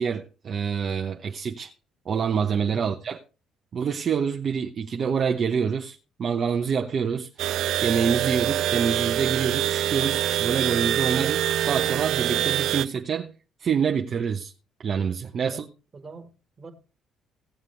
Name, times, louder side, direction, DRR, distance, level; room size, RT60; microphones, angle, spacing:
voice 1, 0.0-1.7 2.1-3.2 3.7-7.3 7.8-13.3 13.6-14.5 14.8-15.6, right 6 dB, 50° right, 0.9 m, -26 dB
sound 1, 7.4-12.8, right 12 dB, 75° right, 0.4 m, -25 dB
voice 2, 15.4-16.7, right 3 dB, 30° right, 1.8 m, -45 dB
17.5 x 7.4 x 3.3 m
cardioid pair, 90°, 0 cm